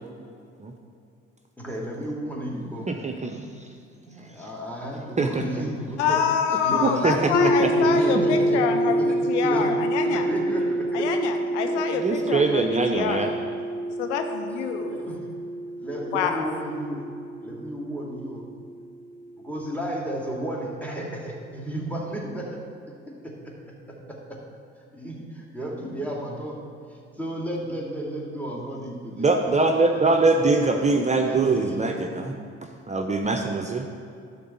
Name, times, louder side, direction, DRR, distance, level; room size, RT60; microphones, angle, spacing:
voice 1, 1.6-2.9 3.2-3.5 4.1-6.2 6.6-9.8 10.0-11.1 14.9-15.2 15.8-17.1 17.4-18.4 19.4-22.6 23.2-23.5 24.1-24.4 24.9-26.6 26.9-29.8 30.1-30.2 30.5-32.3, right 1 dB, 5° left, -2 dB, 2.5 m, -33 dB
voice 2, 2.9-3.4 5.2-5.4 6.7-7.7 11.9-13.3 29.2-32.3 32.9-33.9, right 3 dB, 20° right, 4 dB, 0.8 m, -23 dB
voice 3, 6.0-10.2 10.9-13.3 14.0-15.0 16.1-16.4, left 7 dB, 80° left, 5 dB, 0.8 m, -26 dB
sound 1, 7.3-19.3, right 1 dB, 25° left, 1.0 m, -27 dB
11.5 x 4.0 x 7.9 m, 2.5 s
hypercardioid pair, 55°, 35 cm